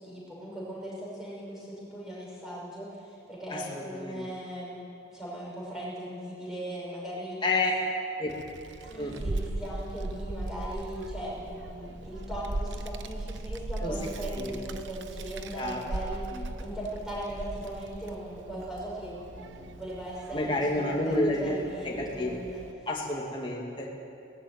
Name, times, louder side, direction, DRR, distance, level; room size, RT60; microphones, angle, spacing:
voice 1, 0.0-4.8 5.1-7.5 8.8-22.9, right 1 dB, 5° right, -6 dB, 6.2 m, -39 dB
voice 2, 3.5-4.2 7.4-7.7 8.2-8.3 9.0-9.1 13.8-13.9 14.4-14.5 15.6-15.8 16.3-16.5 20.3-22.4 22.9-23.9, left 2 dB, 25° left, -2 dB, 2.5 m, -30 dB
Child speech kid speaking, 8.3-22.7, right 2 dB, 80° right, 0.9 m, -39 dB
18.5 x 14.5 x 9.6 m, 2.8 s
head